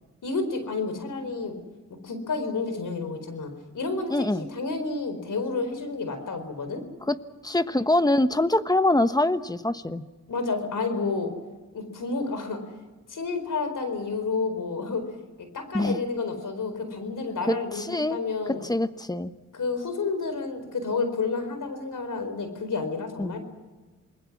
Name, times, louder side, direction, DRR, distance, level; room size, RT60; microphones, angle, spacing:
voice 1, 0.2-1.6 2.0-6.8 10.3-11.3 11.7-12.6 13.1-15.0 15.4-18.6 19.5-23.4, left 4 dB, 75° left, 8 dB, 4.4 m, -30 dB
voice 2, 4.1-4.5 7.1-7.2 7.4-10.0 15.7-16.0 17.5-18.2 18.6-19.3 23.2-23.4, left 1 dB, 10° left, 11 dB, 1.2 m, -24 dB
28.0 x 20.5 x 6.1 m, 1.3 s
cardioid pair, 60°, 32 cm